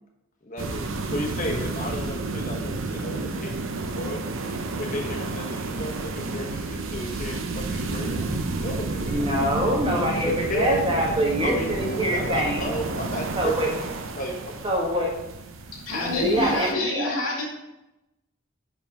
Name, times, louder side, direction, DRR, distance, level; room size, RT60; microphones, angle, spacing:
voice 1, 0.4-3.6 3.9-4.2 4.7-9.6 10.1-10.8 11.4-14.6, equal, 40° left, 1 dB, 1.1 m, -33 dB
sound 1, 0.6-16.7, right 3 dB, 65° right, 0.6 m, -31 dB
voice 2, 9.0-12.6 13.3-13.7 14.6-15.1 15.9-17.1, equal, 25° right, -2 dB, 1.4 m, -25 dB
voice 3, 15.7-17.4, left 2 dB, 80° left, -2 dB, 2.3 m, -27 dB
5.2 x 5.0 x 5.3 m, 0.93 s
head